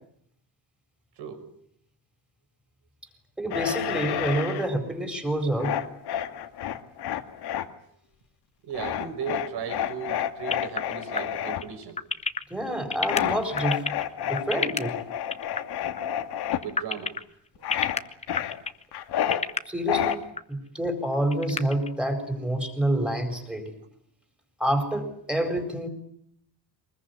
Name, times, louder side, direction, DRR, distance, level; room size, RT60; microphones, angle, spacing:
voice 1, 3.4-5.7 12.5-13.8 14.3-15.0 19.7-20.2 20.5-23.7 24.6-25.9, right 1 dB, ahead, 7 dB, 4.6 m, -27 dB
sound 1, 3.5-4.7 5.6-7.7 8.7-11.6 13.1-16.6 17.6-18.0 18.3-19.4 19.9-20.2, left 10 dB, 70° left, 1.9 m, -30 dB
voice 2, 8.6-12.0 16.6-17.1, right 7 dB, 70° right, 7 dB, 6.0 m, -36 dB
sound 2, 10.5-14.8 15.3-15.6 15.9-16.0 16.4-17.2 17.7-18.8 19.2-19.6 20.1-20.4 20.8-20.9 21.1-21.9, left 4 dB, 15° left, 1.0 m, -28 dB
23.5 x 21.0 x 9.6 m, 0.68 s
cardioid pair, 150°, 41 cm